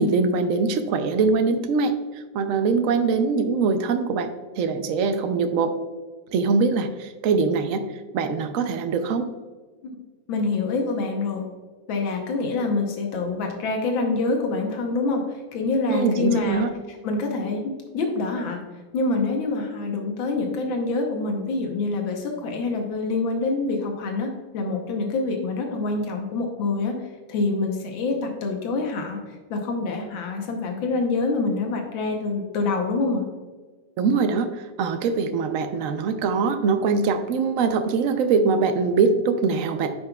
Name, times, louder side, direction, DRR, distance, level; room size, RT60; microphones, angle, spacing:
voice 1, 0.0-1.9 2.3-4.3 4.6-5.7 6.3-7.9 8.1-9.3 15.9-16.7 34.0-40.0, right 4 dB, 75° right, 8 dB, 0.7 m, -22 dB
voice 2, 10.3-11.5 11.9-16.6 16.9-18.6 18.9-33.2, left 3 dB, 85° left, 2 dB, 1.7 m, -26 dB
10.5 x 5.5 x 2.3 m, 1.4 s
omnidirectional pair, 2.1 m